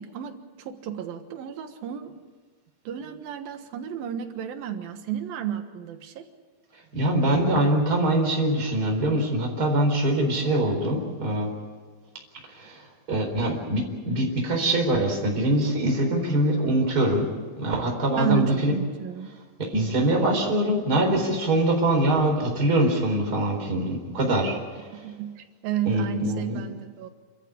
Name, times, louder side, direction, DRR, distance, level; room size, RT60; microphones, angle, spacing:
voice 1, 0.0-2.1 2.9-6.3 18.1-19.3 24.9-27.1, right 10 dB, 75° right, 8 dB, 3.1 m, -32 dB
voice 2, 6.9-11.5 12.4-17.3 17.6-18.7 19.6-25.0 25.8-26.6, right 1 dB, 25° right, 2 dB, 4.5 m, -23 dB
28.0 x 14.0 x 8.5 m, 1.5 s
omnidirectional pair, 4.2 m